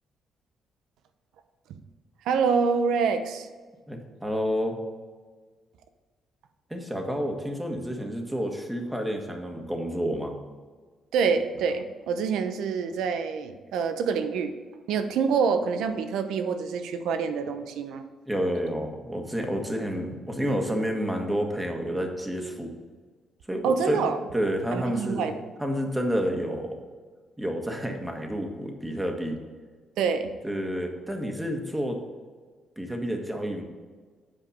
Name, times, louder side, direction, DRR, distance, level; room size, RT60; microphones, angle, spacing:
voice 1, 2.2-3.5 11.1-14.6 14.9-18.1 23.6-24.2 24.7-25.5 30.0-30.3, right 5 dB, 85° right, 8 dB, 0.8 m, -26 dB
voice 2, 3.9-4.8 6.7-10.3 18.3-22.7 23.5-24.0 24.3-25.3 25.6-26.8 27.4-29.4 30.4-32.0 32.8-33.6, equal, 10° right, 3 dB, 1.5 m, -29 dB
8.6 x 5.1 x 5.5 m, 1.5 s
cardioid pair, 90°, 0 cm